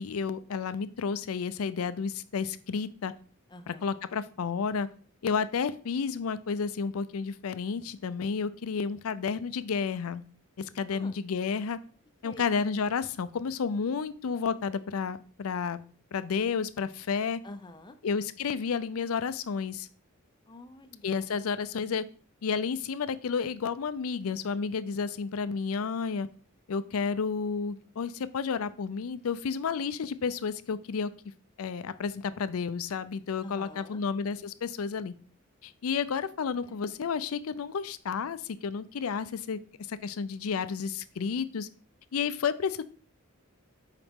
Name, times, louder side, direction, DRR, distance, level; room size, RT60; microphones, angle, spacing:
voice 1, 0.0-3.1 3.7-4.9 5.2-10.2 10.6-11.8 12.2-15.8 16.1-17.4 18.0-19.9 21.0-22.0 22.4-26.3 26.7-31.1 31.6-35.1 35.6-39.6 39.9-41.7 42.1-42.8, left 5 dB, 80° left, 15 dB, 0.5 m, -31 dB
voice 2, 3.5-3.9 10.9-11.2 12.2-12.5 17.4-18.0 20.5-21.4 33.4-34.0 36.7-36.8, left 2 dB, 20° left, 9 dB, 0.6 m, -48 dB
6.9 x 4.9 x 3.6 m, 0.42 s
head